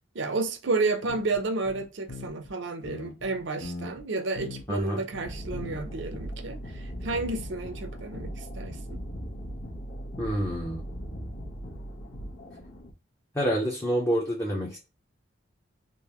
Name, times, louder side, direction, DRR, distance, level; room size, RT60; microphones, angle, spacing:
voice 1, 0.1-9.0, right 3 dB, 60° right, 0.6 m, -31 dB
sound 1, 1.1-2.5 2.8-4.0 4.4-4.8 5.1-6.0 6.2-6.3, left 3 dB, 55° left, 0.7 m, -40 dB
voice 2, 4.7-5.0 10.2-10.9 13.3-14.8, equal, 15° left, 0.6 m, -27 dB
sound 2, 5.2-12.9, equal, 90° left, 1.2 m, -39 dB
3.7 x 2.5 x 2.9 m
head